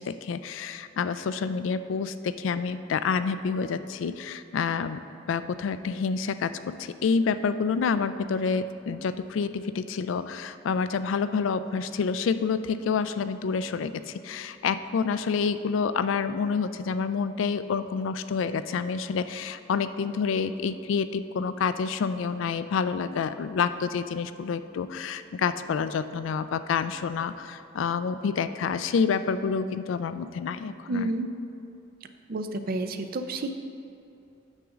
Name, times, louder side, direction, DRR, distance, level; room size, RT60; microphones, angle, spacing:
voice 1, 0.0-5.0 5.3-31.1, left 5 dB, 75° left, 12 dB, 0.3 m, -28 dB
voice 2, 30.9-31.3 32.3-33.5, right 2 dB, 50° right, 7 dB, 0.5 m, -30 dB
8.8 x 3.7 x 6.2 m, 2.7 s
head